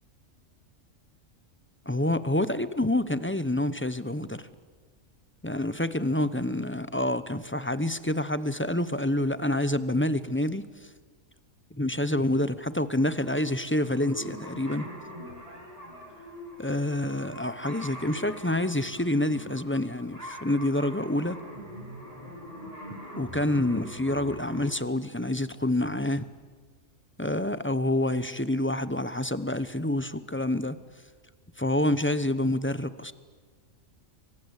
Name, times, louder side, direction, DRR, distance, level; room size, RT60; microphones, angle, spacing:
voice 1, 1.9-4.4 5.4-10.9 11.7-14.9 16.6-21.4 23.2-26.3 27.2-30.8 31.6-33.1, left 1 dB, 10° left, 14 dB, 0.7 m, -27 dB
sound 1, 13.0-24.6, equal, 30° right, 7.3 m, -43 dB
28.5 x 24.5 x 8.2 m, 1.5 s
omnidirectional pair, 1.4 m